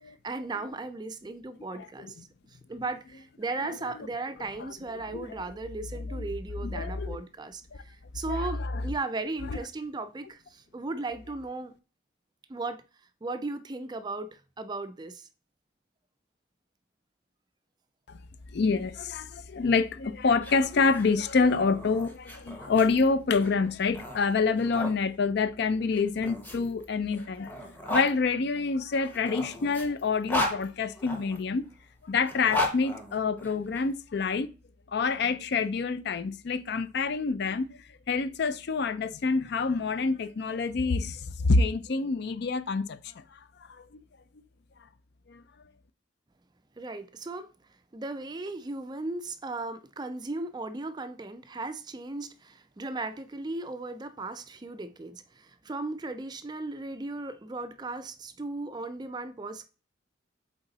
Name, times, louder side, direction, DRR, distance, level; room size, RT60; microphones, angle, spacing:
voice 1, 0.1-2.2 2.7-11.7 12.5-12.8 13.2-14.3 14.6-15.2 46.8-47.5 47.9-59.7, right 3 dB, 20° right, 0.4 m, -36 dB
voice 2, 1.8-2.1 5.1-5.3 6.1-6.2 6.6-7.2 8.3-8.8 9.5-9.6 18.1-18.2 18.5-27.5 27.9-31.7 32.0-34.5 34.9-37.7 38.1-43.0 43.7-44.0 45.3-45.4, left 4 dB, 55° left, 0.4 m, -27 dB
sound 1, 20.3-25.0 25.9-28.1 29.0-31.4 32.2-33.8, left 2 dB, 10° left, 0.9 m, -35 dB
8.0 x 3.6 x 3.9 m
head